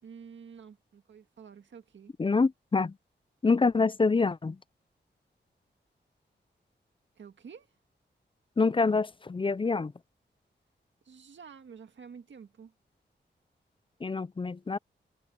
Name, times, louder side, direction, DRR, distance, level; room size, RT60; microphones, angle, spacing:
voice 1, 0.0-2.1 7.2-7.8 11.0-12.7, right 6 dB, 85° right, 1.9 m, -49 dB
voice 2, 2.2-3.0 3.4-4.6 8.6-9.9 14.0-14.8, left 4 dB, 30° left, 0.5 m, -26 dB
wide cardioid pair, 90°, 19 cm